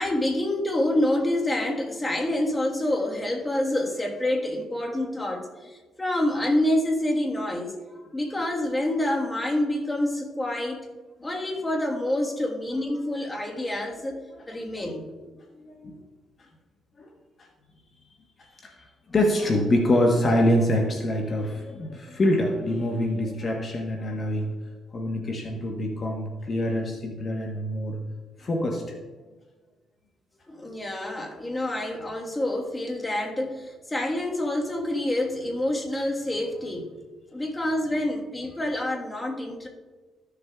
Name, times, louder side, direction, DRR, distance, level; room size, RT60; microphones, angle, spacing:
voice 1, 0.0-7.7 8.1-10.8 11.2-15.1 30.5-36.9 37.3-39.7, left 1 dB, 15° left, 0 dB, 1.4 m, -27 dB
voice 2, 13.7-14.0 14.3-14.4 14.8-15.0 15.5-16.0 16.4-16.5 17.0-17.1 18.4-24.5 24.9-28.0 28.4-29.0, left 1 dB, 40° left, 1 dB, 1.1 m, -25 dB
14.0 x 6.9 x 2.4 m, 1.3 s
cardioid pair, 90°, 0 cm